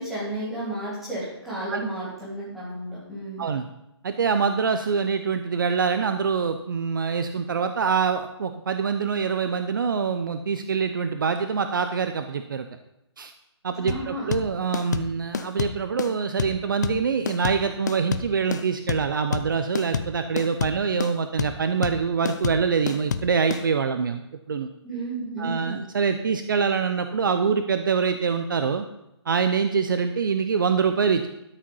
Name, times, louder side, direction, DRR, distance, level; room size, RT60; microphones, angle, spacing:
voice 1, 0.0-3.4 13.7-14.4 24.8-25.8, right 2 dB, ahead, -11 dB, 3.2 m, -32 dB
voice 2, 4.0-12.7 13.2-13.3 13.6-24.2 24.5-24.7 25.4-28.8 29.3-31.3, right 6 dB, 50° right, 8 dB, 0.6 m, -25 dB
sound 1, 13.9-23.6, left 6 dB, 40° left, 0.5 m, -29 dB
13.0 x 5.2 x 5.5 m, 0.86 s
hypercardioid pair, 170°, 15 cm